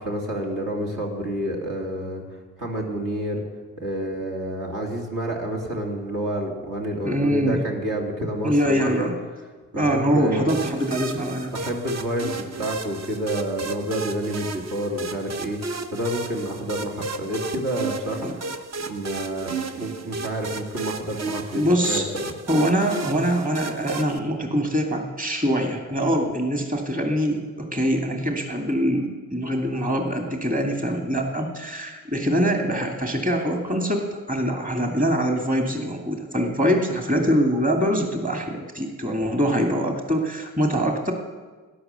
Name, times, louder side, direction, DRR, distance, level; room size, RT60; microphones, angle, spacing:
voice 1, 0.0-2.2 2.6-3.4 3.8-9.1 9.7-10.5 11.5-15.6 15.9-18.5 18.9-22.3, right 1 dB, 60° right, -1 dB, 3.0 m, -29 dB
voice 2, 7.0-7.6 8.4-9.1 9.7-11.5 18.2-18.4 21.5-22.1 22.5-41.1, equal, 20° right, 2 dB, 2.7 m, -23 dB
sound 1, 10.5-24.2, right 3 dB, 45° right, 1.1 m, -33 dB
13.0 x 10.5 x 6.9 m, 1.4 s
hypercardioid pair, 45°, 36 cm